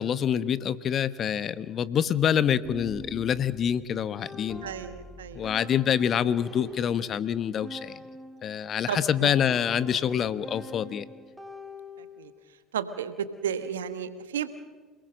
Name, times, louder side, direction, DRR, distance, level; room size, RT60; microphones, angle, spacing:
voice 1, 0.0-4.7 5.3-8.0 8.4-11.0, left 8 dB, 45° left, 16 dB, 1.1 m, -26 dB
sound 1, 2.6-8.6 9.2-12.4, left 1 dB, ahead, 5.8 m, -45 dB
voice 2, 4.6-5.5 8.9-9.3 12.0-12.3 12.7-14.5, right 8 dB, 85° right, 11 dB, 1.4 m, -33 dB
28.0 x 19.5 x 6.4 m, 1.4 s
hypercardioid pair, 65°, 0 cm